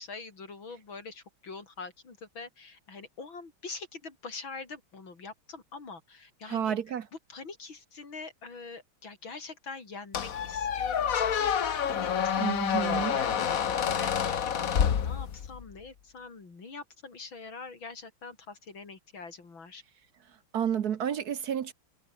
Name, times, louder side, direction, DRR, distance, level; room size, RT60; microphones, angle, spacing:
voice 1, 0.0-6.8 7.3-12.4 12.9-19.8, left 4 dB, 80° left, 4.7 m, -44 dB
voice 2, 6.5-7.1 12.4-13.2 20.5-21.7, right 9 dB, 55° right, 1.3 m, -30 dB
Squeak, 10.1-15.6, left 8 dB, 50° left, 1.5 m, -28 dB
omnidirectional pair, 2.1 m